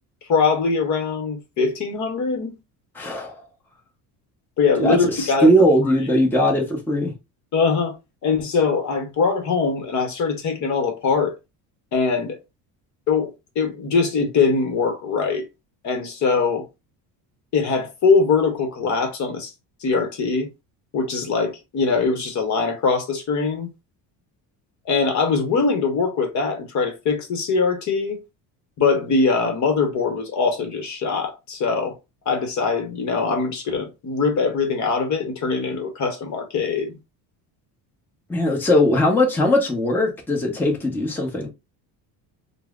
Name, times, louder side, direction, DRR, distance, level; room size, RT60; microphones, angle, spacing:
voice 1, 0.3-2.5 4.6-5.5 7.5-7.9 8.2-11.3 11.9-12.4 13.1-15.5 15.8-16.7 17.5-19.5 19.8-20.5 20.9-23.7 24.9-28.2 28.8-31.9 32.3-37.0, left 4 dB, 45° left, 0.9 m, -22 dB
voice 2, 2.9-3.4 4.8-7.1 38.3-41.5, equal, 5° left, 0.7 m, -19 dB
5.2 x 2.0 x 2.4 m
cardioid pair, 155°, 41 cm